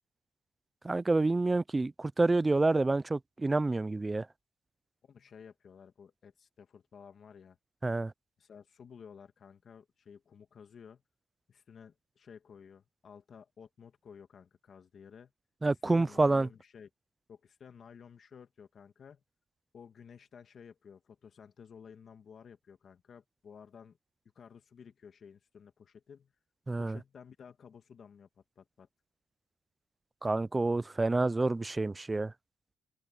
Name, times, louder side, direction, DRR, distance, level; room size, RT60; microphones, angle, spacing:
voice 1, 0.8-4.3 7.8-8.1 15.6-16.5 26.7-27.0 30.2-32.3, right 2 dB, 20° right, 0.3 m, -28 dB
voice 2, 5.0-7.6 8.4-11.0 11.5-15.3 15.7-16.9 17.3-19.2 19.7-24.0 24.4-26.3 26.8-28.9, left 7 dB, 50° left, 1.8 m, -53 dB
open air
cardioid pair, 90°, 0 cm